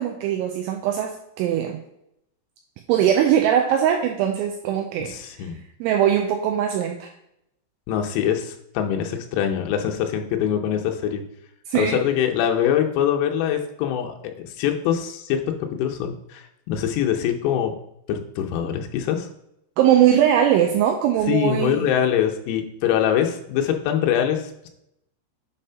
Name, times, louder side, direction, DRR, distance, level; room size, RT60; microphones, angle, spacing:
voice 1, 0.0-1.8 2.9-5.1 5.8-7.1 11.7-12.0 19.8-21.8, right 10 dB, 90° right, 3 dB, 2.7 m, -20 dB
voice 2, 5.0-5.6 7.9-11.2 11.7-14.2 14.4-17.7 18.1-19.3 21.3-24.7, left 9 dB, 90° left, 3 dB, 3.6 m, -23 dB
8.3 x 3.4 x 5.6 m, 0.80 s
omnidirectional pair, 6.0 m